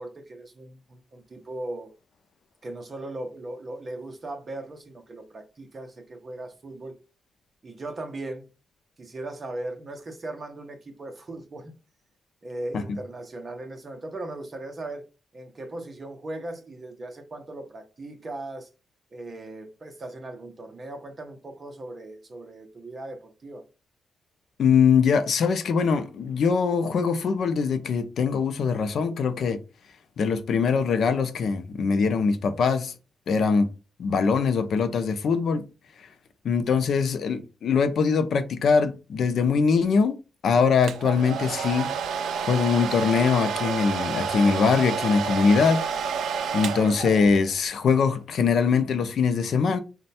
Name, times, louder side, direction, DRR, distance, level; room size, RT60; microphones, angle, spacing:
voice 1, 0.0-1.9 2.6-7.0 7.6-8.5 9.0-11.7 12.4-15.1 15.3-18.7 19.1-23.7, right 2 dB, 25° right, 0.7 m, -38 dB
voice 2, 24.6-29.6 30.2-32.9 33.3-33.7 34.0-35.6 36.4-40.2 40.4-41.9 42.4-45.8 46.5-49.8, left 5 dB, 55° left, 0.5 m, -22 dB
Domestic sounds home sounds, 40.8-47.5, right 6 dB, 85° right, 0.4 m, -29 dB
4.2 x 2.2 x 4.1 m
wide cardioid pair, 170°, 0 cm